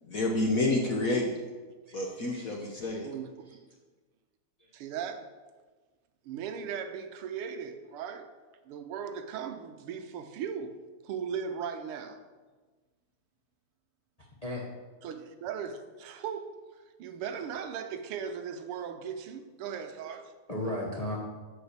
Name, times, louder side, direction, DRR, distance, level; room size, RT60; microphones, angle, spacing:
voice 1, 0.0-1.4 1.9-3.1, left 2 dB, 55° left, 0 dB, 1.0 m, -29 dB
voice 2, 2.3-3.0 14.4-14.6 20.5-21.2, left 1 dB, 30° left, -2 dB, 0.7 m, -36 dB
voice 3, 3.0-3.6 4.7-5.3 6.2-8.3 8.6-10.8 11.0-12.2 15.0-16.6 17.0-20.3, right 7 dB, 85° right, 8 dB, 1.7 m, -38 dB
7.9 x 5.3 x 6.6 m, 1.3 s
omnidirectional pair, 2.4 m